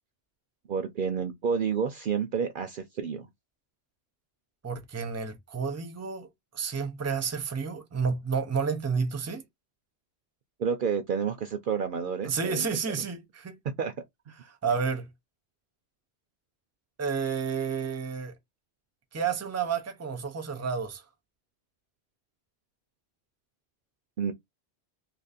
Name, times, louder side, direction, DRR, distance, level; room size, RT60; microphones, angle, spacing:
voice 1, 0.7-3.3 10.6-12.6 13.8-13.9 24.2-24.3, right 6 dB, 60° right, 0.6 m, -29 dB
voice 2, 4.6-6.3 6.5-9.4 12.2-13.6 14.6-15.1 17.0-18.3 19.1-21.0, right 5 dB, 20° right, 0.6 m, -30 dB
2.8 x 2.6 x 4.0 m
omnidirectional pair, 1.1 m